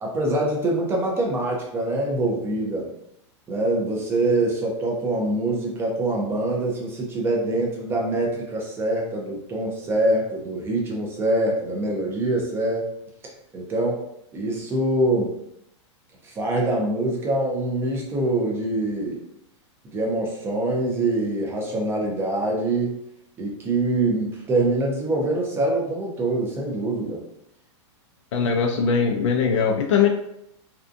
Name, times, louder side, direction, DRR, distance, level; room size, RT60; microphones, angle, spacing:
voice 1, 0.0-2.9 3.5-12.9 13.5-14.0 14.3-15.3 16.2-19.2 19.8-23.0 23.4-27.2, right 2 dB, 15° right, -1 dB, 0.5 m, -24 dB
voice 2, 28.3-30.1, left 6 dB, 75° left, 2 dB, 0.5 m, -20 dB
2.6 x 2.3 x 2.5 m, 0.78 s
supercardioid pair, 150°, 16 cm